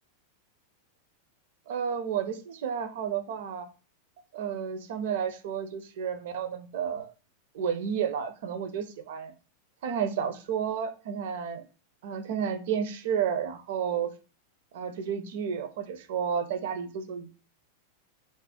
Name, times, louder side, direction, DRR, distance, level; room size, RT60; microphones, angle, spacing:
voice 1, 1.7-3.7 4.3-7.1 7.5-9.3 9.8-11.6 12.0-14.1 14.7-17.3, right 7 dB, 55° right, 9 dB, 0.4 m, -31 dB
2.6 x 2.0 x 3.5 m, 0.35 s
figure-of-eight pair, 90°, 0 cm